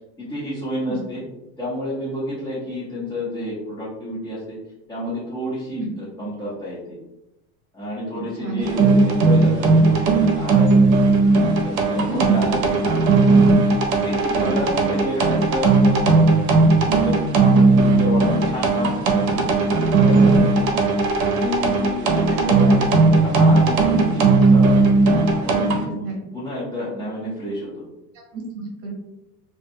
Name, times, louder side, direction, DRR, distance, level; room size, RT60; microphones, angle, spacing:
voice 1, 0.2-1.2 1.6-4.6 4.9-7.0 7.7-11.0 11.6-13.2 14.0-16.5 16.8-19.5 20.0-20.8 21.3-24.7 25.3-27.8, left 1 dB, 10° left, -12 dB, 0.4 m, -30 dB
sound 1, 8.6-25.8, right 3 dB, 65° right, 0.6 m, -17 dB
voice 2, 12.1-12.5 14.3-14.7 23.9-24.1 26.0-26.2 28.3-28.9, right 4 dB, 30° right, 0 dB, 0.8 m, -28 dB
2.5 x 2.1 x 2.6 m, 0.91 s
supercardioid pair, 140°, 45 cm